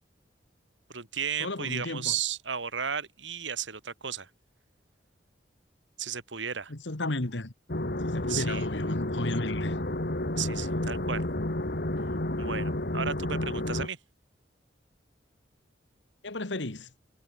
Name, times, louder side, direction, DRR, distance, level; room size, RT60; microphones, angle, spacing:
voice 1, 0.9-4.3 6.0-6.7 8.3-8.7 10.4-11.2 12.4-14.0, right 7 dB, 85° right, 2.6 m, -34 dB
voice 2, 1.4-2.1 6.7-7.5 8.0-9.8 16.2-16.9, left 2 dB, 75° left, 1.9 m, -34 dB
sound 1, 7.7-13.9, left 1 dB, 55° left, 2.7 m, -31 dB
head